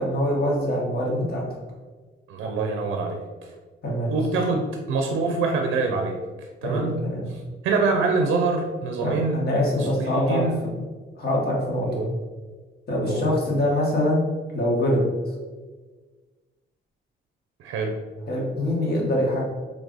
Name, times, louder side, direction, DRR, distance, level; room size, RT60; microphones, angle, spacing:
voice 1, 0.0-1.4 3.8-4.1 6.6-7.2 9.0-10.4 11.1-11.9 12.9-14.2 14.5-15.0 18.3-19.4, left 1 dB, 50° left, -3 dB, 1.4 m, -24 dB
voice 2, 2.3-3.2 4.1-7.0 7.6-9.4 9.8-10.6 11.8-12.1 13.1-13.2 17.6-18.0, right 4 dB, 85° right, 2 dB, 0.5 m, -25 dB
3.3 x 2.4 x 3.8 m, 1.3 s
cardioid pair, 90°, 20 cm